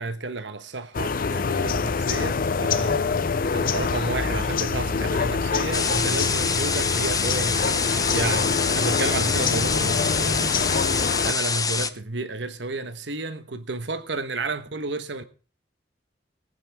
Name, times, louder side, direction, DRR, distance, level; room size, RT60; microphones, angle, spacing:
voice 1, 0.0-3.0 3.5-10.6 11.2-15.2, right 3 dB, 80° right, 1.3 m, -31 dB
sound 1, 0.9-11.3, left 5 dB, 50° left, 0.6 m, -25 dB
sound 2, 5.7-11.9, left 5 dB, 20° left, 0.8 m, -26 dB
20.0 x 9.0 x 3.5 m
head